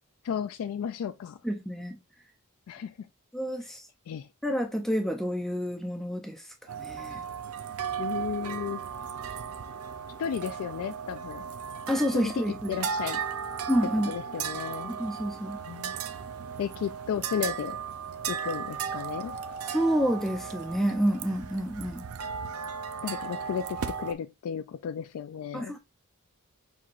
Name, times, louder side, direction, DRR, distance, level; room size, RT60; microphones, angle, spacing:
voice 1, 0.2-1.4 2.7-3.1 4.1-4.3 8.0-8.8 10.2-11.4 12.1-13.2 14.1-14.9 15.7-15.9 16.6-17.8 18.3-19.4 23.0-25.7, left 8 dB, 75° left, 0.3 m, -34 dB
voice 2, 1.4-2.0 3.3-3.8 4.4-7.2 11.9-12.8 13.7-14.1 14.9-15.6 19.7-22.1 25.5-25.8, equal, ahead, 0.4 m, -29 dB
sound 1, 6.7-24.1, right 7 dB, 80° right, 0.5 m, -36 dB
6.0 x 2.8 x 2.5 m
head